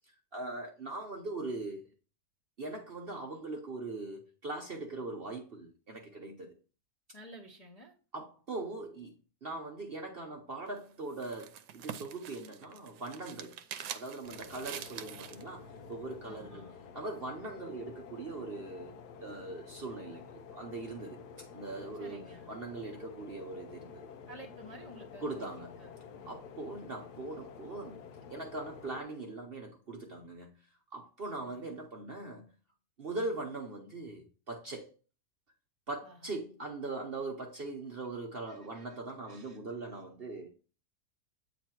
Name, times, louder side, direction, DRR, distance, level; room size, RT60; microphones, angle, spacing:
voice 1, 0.3-1.8 2.6-6.5 8.1-9.1 9.4-13.6 13.9-16.6 16.9-24.1 25.2-25.8 26.3-28.0 28.3-30.5 30.9-32.5 33.0-34.9 35.9-40.5, right 2 dB, 45° right, 0.9 m, -41 dB
voice 2, 7.1-7.9 16.2-16.7 22.0-22.5 24.3-25.5 25.8-26.4 31.4-31.8 36.0-36.3 37.5-37.6 38.5-39.0 39.2-39.6, equal, 30° left, 0.7 m, -52 dB
sound 1, 10.7-15.5, right 10 dB, 80° right, 1.1 m, -45 dB
sound 2, 14.2-29.0, left 6 dB, 75° left, 1.1 m, -50 dB
8.4 x 3.1 x 4.4 m
omnidirectional pair, 1.8 m